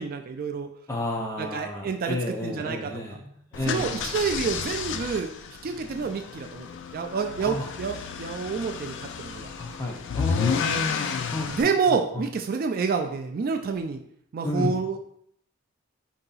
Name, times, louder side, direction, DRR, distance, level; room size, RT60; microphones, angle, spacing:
voice 1, 0.0-0.7 1.4-2.2 2.4-3.0 3.7-6.7 6.9-9.5 11.5-14.0 14.3-15.0, right 5 dB, 40° right, 5 dB, 0.3 m, -28 dB
voice 2, 0.9-4.1 7.4-7.7 9.6-11.5 12.1-12.2 14.4-14.7, left 1 dB, 15° left, 0 dB, 0.7 m, -32 dB
sound 1, 3.5-11.6, left 6 dB, 55° left, 0.3 m, -31 dB
4.6 x 2.8 x 3.9 m, 0.68 s
head